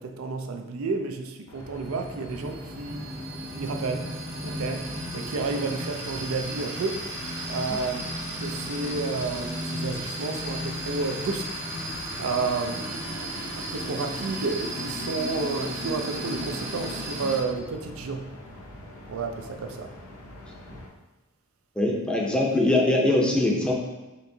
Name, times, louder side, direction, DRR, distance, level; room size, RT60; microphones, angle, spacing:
voice 1, 0.0-3.1 3.5-4.2 4.4-7.0 7.5-11.6 12.2-18.4 19.1-19.9, right 4 dB, 85° right, 5 dB, 0.4 m, -31 dB
sound 1, 1.5-20.9, left 1 dB, 90° left, 0.8 m, -44 dB
sound 2, 1.6-17.4, right 1 dB, 60° right, 1.2 m, -34 dB
voice 2, 21.8-23.7, left 1 dB, 5° left, -2 dB, 0.6 m, -22 dB
4.4 x 3.7 x 2.7 m, 1.1 s
head